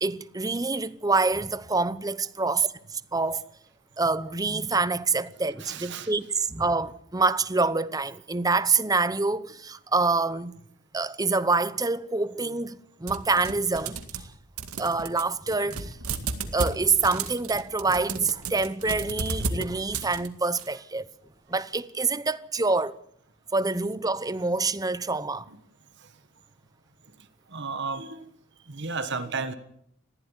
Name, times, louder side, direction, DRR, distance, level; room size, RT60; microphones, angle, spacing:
voice 1, 0.0-3.4 4.0-10.6 10.9-14.3 14.8-16.0 16.4-21.1 21.5-23.0 23.5-25.5, right 3 dB, 15° right, 0.8 m, -26 dB
voice 2, 5.6-6.1 27.5-28.3 28.7-29.5, right 4 dB, 55° right, 1.4 m, -33 dB
sound 1, 13.1-14.3 14.6-20.7, right 4 dB, 85° right, 2.1 m, -33 dB
20.5 x 15.0 x 9.7 m
head